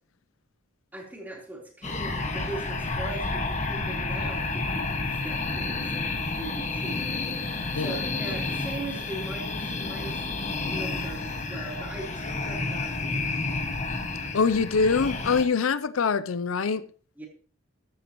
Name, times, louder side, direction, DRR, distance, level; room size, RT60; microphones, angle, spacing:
voice 1, 0.9-5.9 6.3-7.0 7.3-10.2 10.7-13.3 17.2-17.3, right 2 dB, 10° right, 3.7 m, -40 dB
sound 1, 1.8-15.5, left 3 dB, 35° left, 1.6 m, -30 dB
voice 2, 14.3-16.8, left 5 dB, 85° left, 0.6 m, -24 dB
15.0 x 12.0 x 3.0 m
head